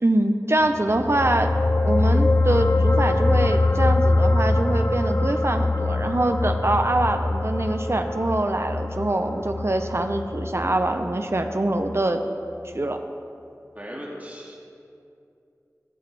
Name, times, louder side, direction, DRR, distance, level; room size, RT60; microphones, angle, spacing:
voice 1, 0.0-1.6 1.8-12.2 12.7-13.0, right 1 dB, 45° right, 6 dB, 0.7 m, -24 dB
sound 1, 0.8-11.5 11.8-12.0, left 2 dB, 40° left, 0.5 m, -23 dB
voice 2, 13.7-14.6, equal, 25° right, -3 dB, 2.2 m, -37 dB
22.5 x 7.7 x 3.4 m, 2.6 s
wide cardioid pair, 40°, 6 cm